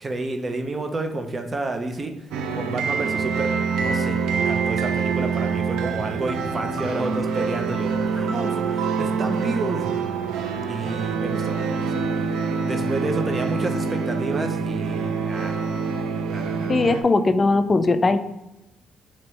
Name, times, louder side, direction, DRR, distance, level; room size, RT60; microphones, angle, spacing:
voice 1, 0.0-2.3 2.5-9.8 10.7-12.0 12.6-15.6 16.3-16.7, right 2 dB, 30° right, 5 dB, 0.6 m, -30 dB
sound 1, 2.3-17.0, right 5 dB, 90° right, 0.4 m, -25 dB
voice 2, 16.7-18.2, left 3 dB, 30° left, 8 dB, 0.3 m, -19 dB
3.1 x 2.9 x 4.5 m, 0.96 s
cardioid pair, 90°, 0 cm